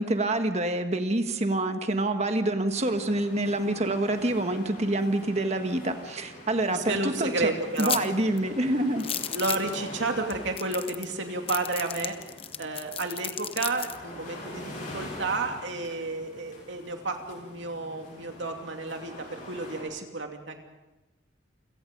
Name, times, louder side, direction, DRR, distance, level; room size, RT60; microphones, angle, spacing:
voice 1, 0.0-7.5 7.8-9.0, right 1 dB, 35° right, 7 dB, 1.5 m, -27 dB
sound 1, 2.7-19.8, left 1 dB, 45° left, 7.6 m, -45 dB
voice 2, 6.7-8.0 9.3-12.2 12.6-20.7, right 3 dB, 70° right, 4 dB, 2.7 m, -31 dB
sound 2, 7.8-8.1 8.4-8.5 9.0-9.7 10.3-10.4 10.6-11.1 11.5-14.0, left 9 dB, 30° left, 0.9 m, -33 dB
28.5 x 17.5 x 5.4 m, 1.0 s
head